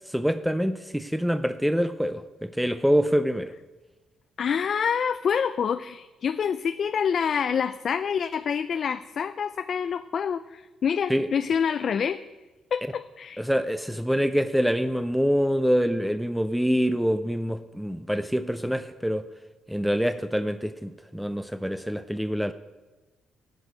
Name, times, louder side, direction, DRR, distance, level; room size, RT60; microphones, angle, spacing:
voice 1, 0.1-3.5 11.1-11.3 13.4-19.3 19.7-22.5, equal, ahead, 10 dB, 0.5 m, -25 dB
voice 2, 4.4-12.2 12.7-13.4, left 7 dB, 55° left, 11 dB, 0.4 m, -27 dB
11.0 x 6.3 x 9.2 m, 1.2 s
cardioid pair, 90°, 0 cm